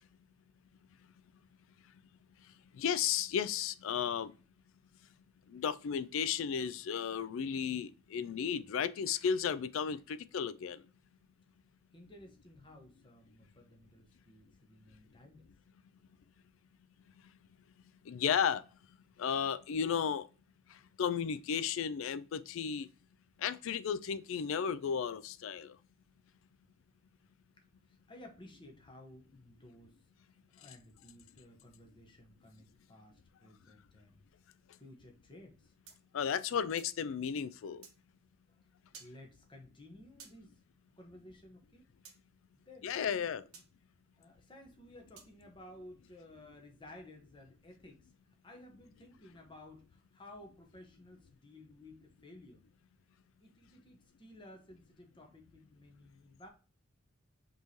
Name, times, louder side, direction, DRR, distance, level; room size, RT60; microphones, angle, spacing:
voice 1, 2.7-4.3 5.5-10.8 18.1-18.6 19.2-20.3 21.0-22.9 23.4-25.7 36.1-37.8 42.8-43.4, left 7 dB, 65° left, 0.3 m, -34 dB
voice 2, 11.9-15.5 16.1-16.2 27.6-30.0 30.6-34.2 34.8-35.7 38.5-38.6 39.0-40.6 41.0-41.8 42.5-43.2 43.5-43.7 44.2-48.1 48.4-52.6 53.4-56.5, left 1 dB, 20° left, 0.9 m, -55 dB
sound 1, 35.9-37.0 37.8-38.0 38.9-39.2 40.2-40.4 42.0-42.2 43.5-43.7 45.2-45.4, right 6 dB, 85° right, 1.1 m, -54 dB
5.3 x 3.1 x 2.7 m
head